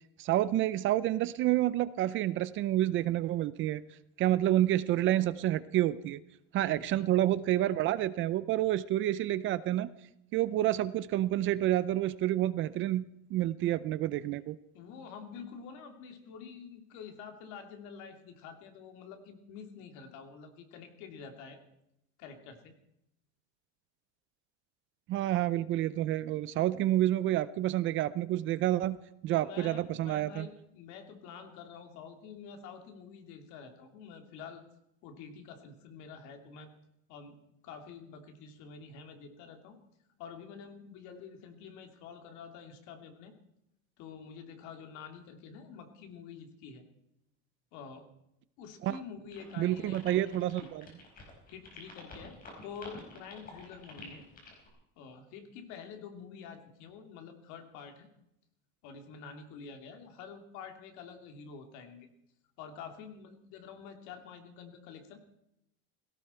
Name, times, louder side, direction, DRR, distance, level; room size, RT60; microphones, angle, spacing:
voice 1, 0.2-3.8 4.2-6.2 6.5-9.9 10.3-13.0 13.3-14.6 25.1-29.0 29.2-30.5 48.8-49.0 49.6-50.8, right 13 dB, 40° right, 16 dB, 0.5 m, -29 dB
voice 2, 6.6-7.3 14.7-21.6 22.2-22.7 29.4-34.6 35.0-36.7 37.1-37.4 37.6-39.8 40.2-43.3 44.0-46.9 47.7-48.1 48.6-50.2 51.5-54.2 55.0-58.1 58.8-62.1 62.6-65.2, left 6 dB, 60° left, 5 dB, 2.9 m, -48 dB
sound 1, 49.3-54.7, left 3 dB, 25° left, 4.9 m, -50 dB
18.0 x 17.0 x 4.4 m, 0.81 s
cardioid pair, 175°, 32 cm